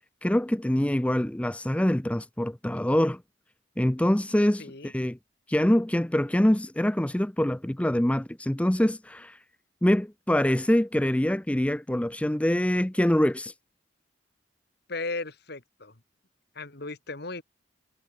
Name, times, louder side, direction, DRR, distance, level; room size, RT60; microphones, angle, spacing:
voice 1, 0.2-3.2 3.8-5.2 5.5-9.4 9.8-13.5, left 1 dB, 5° left, 0.5 m, -24 dB
voice 2, 4.6-4.9 14.9-15.9 16.6-17.4, left 3 dB, 55° left, 2.4 m, -36 dB
head